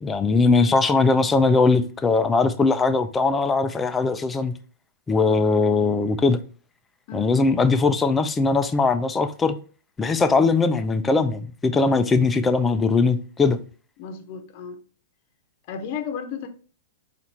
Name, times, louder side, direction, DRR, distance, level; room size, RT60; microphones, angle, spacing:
voice 1, 0.0-4.5 5.1-6.4 7.1-9.6 10.0-13.6, left 3 dB, 15° left, 0.4 m, -20 dB
voice 2, 14.0-14.8 15.7-16.5, left 6 dB, 50° left, 0.8 m, -33 dB
4.3 x 2.5 x 4.1 m
hypercardioid pair, 120°, 0 cm